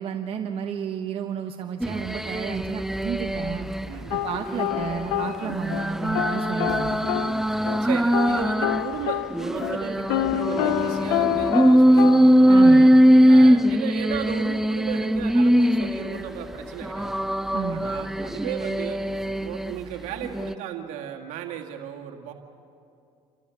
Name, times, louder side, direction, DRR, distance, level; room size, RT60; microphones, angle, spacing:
voice 1, 0.0-3.7 4.1-6.9 12.5-12.9 17.5-17.9, right 7 dB, 50° right, 4 dB, 1.1 m, -32 dB
sound 1, 1.8-3.9 4.3-8.9 9.3-16.3 16.8-19.7 20.2-20.5, equal, 5° right, 0.4 m, -20 dB
sound 2, 4.1-5.9 6.1-7.9 8.1-12.3, left 15 dB, 85° left, 0.5 m, -28 dB
voice 2, 7.8-12.9 13.2-17.1 17.6-19.0 19.4-22.3, right 9 dB, 75° right, 3 dB, 2.0 m, -35 dB
29.0 x 13.5 x 7.1 m, 2.6 s
supercardioid pair, 90°, 13 cm